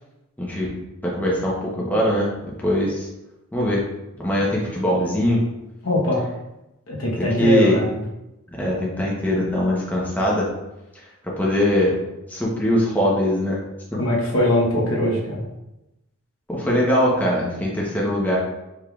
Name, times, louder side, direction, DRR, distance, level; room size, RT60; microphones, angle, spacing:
voice 1, 0.4-0.7 1.0-3.1 3.5-3.8 4.2-5.4 7.2-7.8 8.5-10.5 11.4-11.9 12.3-13.6 13.9-14.0 16.5-18.4, left 1 dB, 10° left, -5 dB, 0.8 m, -21 dB
voice 2, 5.8-6.3 6.9-8.0 14.0-15.4, left 1 dB, 65° left, -4 dB, 1.1 m, -21 dB
4.8 x 3.6 x 2.3 m, 0.94 s
head